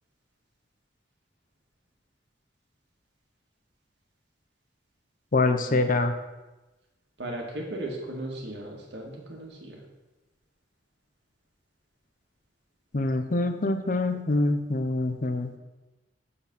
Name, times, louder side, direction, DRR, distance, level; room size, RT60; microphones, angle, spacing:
voice 1, 5.3-6.1 12.9-15.6, left 2 dB, 50° left, 8 dB, 0.7 m, -25 dB
voice 2, 7.2-9.8, right 1 dB, 70° right, 0 dB, 2.0 m, -36 dB
7.3 x 6.9 x 5.4 m, 1.1 s
head